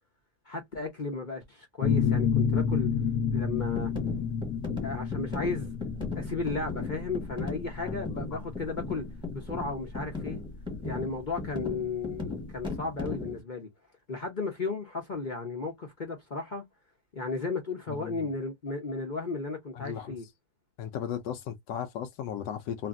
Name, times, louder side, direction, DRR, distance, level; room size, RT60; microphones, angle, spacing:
voice 1, 0.5-2.9 3.3-3.9 4.8-5.8 6.2-9.0 9.3-10.4 10.8-13.7 14.1-16.7 17.1-20.2, left 3 dB, 45° left, 0.6 m, -34 dB
sound 1, 1.8-11.2, left 6 dB, 70° left, 0.9 m, -30 dB
sound 2, 3.7-13.4, left 3 dB, 5° right, 1.0 m, -37 dB
voice 2, 7.8-8.5 17.9-18.3 19.7-20.2 20.8-22.9, left 9 dB, 85° left, 1.2 m, -36 dB
2.9 x 2.6 x 2.4 m
omnidirectional pair, 1.8 m